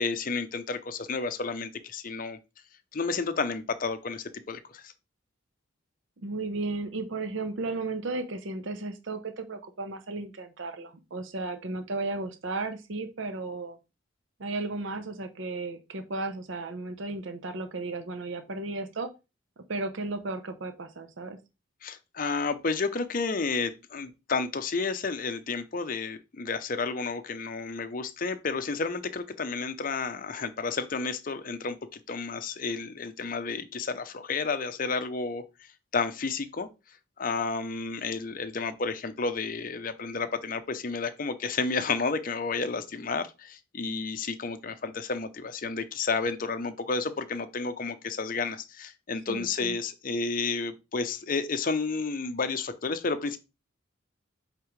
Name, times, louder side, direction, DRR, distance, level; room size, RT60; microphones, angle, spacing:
voice 1, 0.0-2.4 2.9-4.9 21.8-31.8 32.1-36.7 37.2-53.4, left 4 dB, 40° left, 0.5 m, -31 dB
voice 2, 6.2-13.8 14.4-19.1 19.7-21.4 49.3-49.8, right 3 dB, 65° right, 0.7 m, -34 dB
8.2 x 3.6 x 3.1 m
head